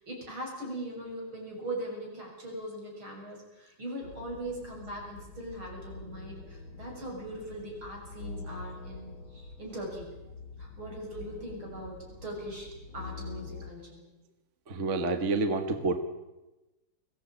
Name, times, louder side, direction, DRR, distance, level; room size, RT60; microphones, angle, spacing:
voice 1, 0.0-10.1 10.6-12.7 12.9-14.1, right 1 dB, 80° right, -1 dB, 7.6 m, -40 dB
sound 1, 4.0-13.7, left 3 dB, 70° left, 2.2 m, -45 dB
voice 2, 14.7-16.0, right 3 dB, 40° right, 8 dB, 1.6 m, -28 dB
21.5 x 16.0 x 8.8 m, 1.0 s
omnidirectional pair, 2.2 m